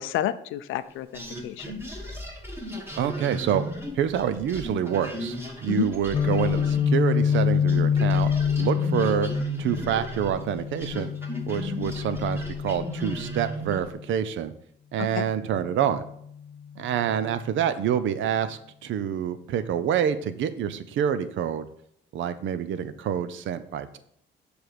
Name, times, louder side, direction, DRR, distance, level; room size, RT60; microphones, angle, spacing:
voice 1, 0.0-1.7 5.7-5.9 15.0-15.2, left 13 dB, 90° left, 14 dB, 0.5 m, -30 dB
sound 1, 1.1-7.4 7.7-13.9, right 1 dB, 10° right, 1.7 m, -35 dB
voice 2, 3.0-3.6 4.0-8.3 8.6-9.3 9.6-11.1 11.5-14.5 14.9-16.0 16.8-21.7 22.1-24.0, right 9 dB, 75° right, 13 dB, 0.6 m, -27 dB
Guitar, 6.1-14.0, left 7 dB, 30° left, 0.4 m, -26 dB
7.0 x 3.4 x 5.9 m, 0.69 s
cardioid pair, 90°, 20 cm